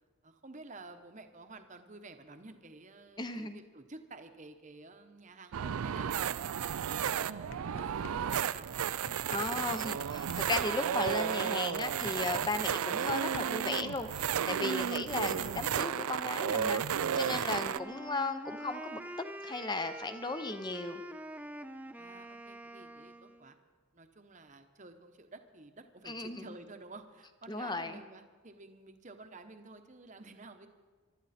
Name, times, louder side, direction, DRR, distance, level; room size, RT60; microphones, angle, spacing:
voice 1, 0.2-8.2 8.5-8.7 22.0-23.6 23.9-30.7, right 3 dB, 35° right, 7 dB, 1.0 m, -51 dB
voice 2, 3.2-3.6 9.3-19.0 19.4-21.0 26.1-26.5 27.5-28.0, left 3 dB, 20° left, 9 dB, 0.8 m, -36 dB
sound 1, 5.5-17.8, right 8 dB, 80° right, 0.4 m, -33 dB
sound 2, 6.5-6.6 6.9-10.8 11.1-13.8, left 4 dB, 75° left, 0.7 m, -48 dB
Wind instrument woodwind instrument, 17.3-23.5, right 1 dB, 5° right, 0.4 m, -46 dB
24.0 x 12.5 x 4.3 m, 1.4 s
head